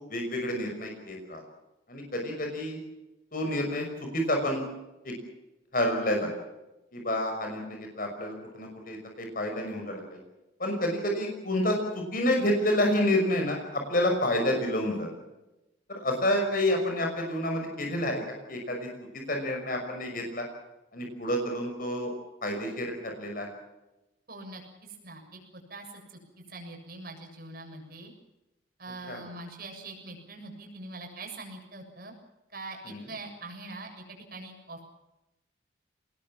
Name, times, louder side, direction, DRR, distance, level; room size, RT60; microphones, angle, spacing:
voice 1, 0.1-1.4 1.9-2.8 3.3-3.9 4.1-4.6 5.0-5.1 5.7-6.3 6.9-10.2 10.6-15.1 15.9-18.2 18.5-18.9 19.3-20.5 20.9-22.1 22.4-23.5 29.1-29.3 32.9-33.1, left 1 dB, 45° left, 2 dB, 5.9 m, -29 dB
voice 2, 24.3-26.2 26.5-28.1 28.8-32.1 32.5-34.0 34.3-34.9, right 2 dB, 50° right, 2 dB, 7.1 m, -43 dB
26.5 x 20.0 x 7.4 m, 0.97 s
head